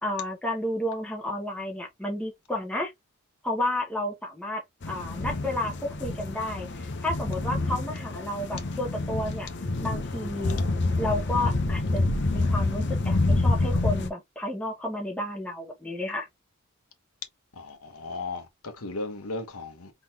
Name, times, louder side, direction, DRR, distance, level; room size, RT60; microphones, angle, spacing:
voice 1, 0.0-2.9 3.4-4.6 4.9-9.5 9.8-10.6 11.0-16.3, left 1 dB, 5° left, 1.3 m, -31 dB
sound 1, 4.8-14.1, left 2 dB, 55° left, 0.8 m, -27 dB
voice 2, 17.5-19.9, left 3 dB, 80° left, 1.3 m, -36 dB
3.9 x 3.5 x 2.9 m
head